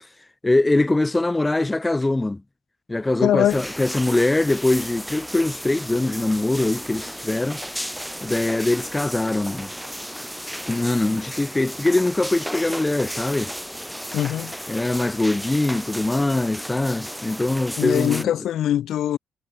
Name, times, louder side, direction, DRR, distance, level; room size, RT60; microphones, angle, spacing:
voice 1, 0.4-2.4 2.9-7.6 8.2-9.7 10.7-13.5 14.7-18.3, left 2 dB, 15° left, 0.5 m, -22 dB
voice 2, 3.2-3.6 14.1-14.5 17.8-19.2, left 11 dB, 75° left, 1.3 m, -22 dB
sound 1, 3.5-18.2, equal, ahead, 2.0 m, -34 dB
cardioid pair, 90°, 0 cm